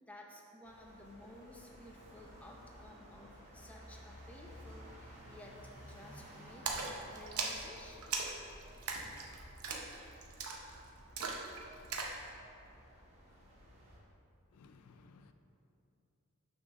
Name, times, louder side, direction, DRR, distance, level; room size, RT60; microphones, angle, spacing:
voice 1, 0.0-8.2, left 1 dB, 5° left, -1 dB, 0.7 m, -54 dB
sound 1, 0.6-14.0, equal, 30° right, 1.4 m, -56 dB
Splash splatter, 6.7-12.2, right 4 dB, 75° right, 0.7 m, -40 dB
voice 2, 14.5-15.3, left 4 dB, 90° left, 8 dB, 0.4 m, -59 dB
6.1 x 3.9 x 6.2 m, 2.8 s
head